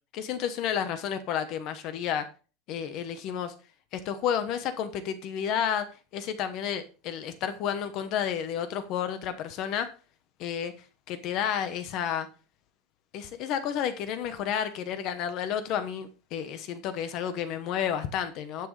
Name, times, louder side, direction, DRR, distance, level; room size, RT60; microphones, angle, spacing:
voice 1, 0.1-2.3 2.7-3.5 3.9-5.9 6.1-9.9 10.4-10.7 11.1-12.3 13.1-18.7, left 8 dB, 40° left, 0.9 m, -31 dB
11.0 x 5.9 x 3.2 m
supercardioid pair, 180°, 0 cm